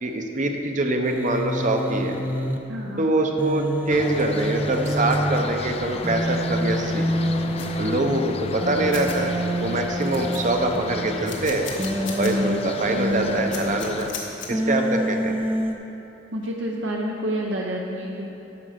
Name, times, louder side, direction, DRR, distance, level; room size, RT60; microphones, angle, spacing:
voice 1, 0.0-2.2 3.0-7.1 7.8-9.3 9.6-11.7 12.2-14.1 14.5-15.5, right 2 dB, 40° right, 4 dB, 0.8 m, -24 dB
Human voice, 1.0-2.6 3.4-5.4 6.0-7.9 8.6-10.8 11.8-13.4 14.5-15.7, equal, 10° right, 0.6 m, -27 dB
voice 2, 2.7-3.1 12.2-12.7 16.3-18.3, equal, 70° right, -1 dB, 0.8 m, -29 dB
sound 1, 3.9-14.1, left 4 dB, 30° left, 0.4 m, -34 dB
sound 2, 7.6-7.7 8.6-8.7 8.9-9.2 9.7-9.8 10.0-10.7 11.3-12.3 12.7-12.8 13.5-14.5, left 6 dB, 75° left, 1.4 m, -36 dB
9.8 x 6.5 x 5.8 m, 2.9 s
head